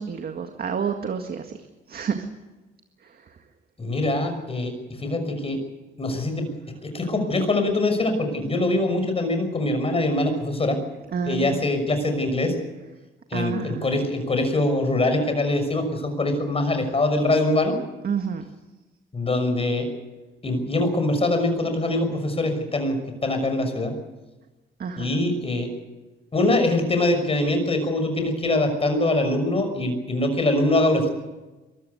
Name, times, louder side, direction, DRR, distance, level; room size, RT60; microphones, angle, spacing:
voice 1, 0.0-1.5 1.9-2.3 11.1-11.6 13.3-13.9 18.0-18.4 24.8-25.2, right 6 dB, 50° right, 5 dB, 1.9 m, -29 dB
voice 2, 3.8-4.7 5.0-5.6 6.0-6.5 6.9-10.8 11.2-12.5 13.3-17.8 19.1-19.9 20.4-23.0 23.2-23.9 25.0-25.7 26.3-31.1, left 2 dB, 30° left, 7 dB, 6.1 m, -23 dB
23.0 x 14.0 x 9.7 m, 1.1 s
cardioid pair, 90°, 20 cm